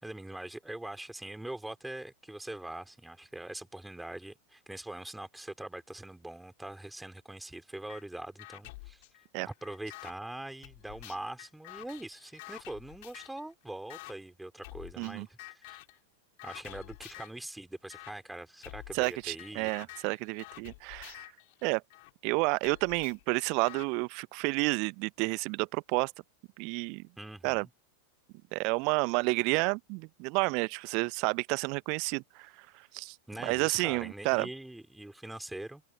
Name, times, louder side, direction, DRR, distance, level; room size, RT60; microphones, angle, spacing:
voice 1, 0.0-9.0 9.5-15.8 16.4-19.7 27.2-27.7 33.3-35.8, right 1 dB, 5° right, 4.6 m, -43 dB
sound 1, 7.9-8.0 8.4-10.1 10.6-13.4 13.9-14.1 14.6-15.1 15.4-16.0 16.4-17.4 17.9-18.1 18.6-22.1 22.6-23.9, left 24 dB, 50° left, 3.3 m, -49 dB
voice 2, 18.9-21.2 21.6-21.8 22.2-26.1 26.6-27.0 27.4-27.7 28.5-33.2 33.4-34.5, right 32 dB, 45° right, 0.7 m, -30 dB
figure-of-eight pair, 90°, 0 cm